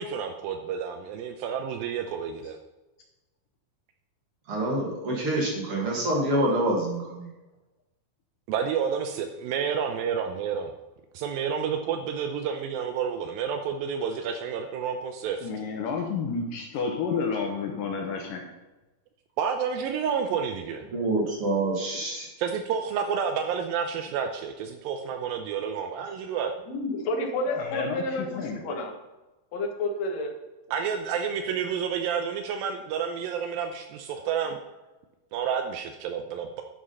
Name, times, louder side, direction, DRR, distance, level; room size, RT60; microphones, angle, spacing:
voice 1, 0.0-2.6 8.5-10.7 11.1-15.5 19.4-20.8 22.4-26.5 30.7-34.6 35.3-36.6, right 7 dB, 85° right, 5 dB, 2.4 m, -30 dB
voice 2, 4.5-7.3 20.9-22.3, right 1 dB, 40° right, -2 dB, 2.7 m, -26 dB
voice 3, 15.4-18.5 27.5-28.6, left 5 dB, 70° left, 2 dB, 2.5 m, -30 dB
voice 4, 26.6-28.9 29.5-30.3, left 2 dB, 55° left, 2 dB, 2.3 m, -30 dB
11.5 x 6.2 x 5.5 m, 1.1 s
omnidirectional pair, 4.3 m